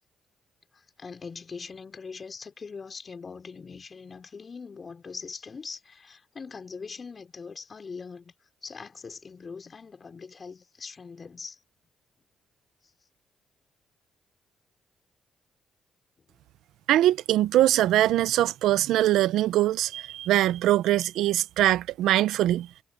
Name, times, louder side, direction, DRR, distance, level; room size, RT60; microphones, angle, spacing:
voice 1, 0.7-8.3 8.6-11.6, left 5 dB, 40° left, 4.6 m, -42 dB
voice 2, 16.9-22.7, right 14 dB, 85° right, 0.8 m, -22 dB
supercardioid pair, 65°, 0 cm